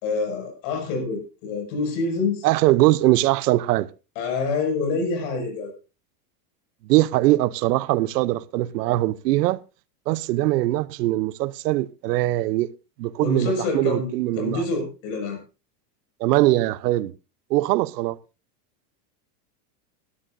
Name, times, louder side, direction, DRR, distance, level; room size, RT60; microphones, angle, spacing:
voice 1, 0.0-2.5 4.2-5.7 13.2-15.4, left 3 dB, 50° left, 5.9 m, -26 dB
voice 2, 2.4-3.9 6.9-9.6 10.1-12.7 13.0-14.6 16.2-17.1 17.5-18.2, right 17 dB, 90° right, 0.8 m, -21 dB
18.5 x 13.0 x 2.6 m
supercardioid pair, 170°, 46 cm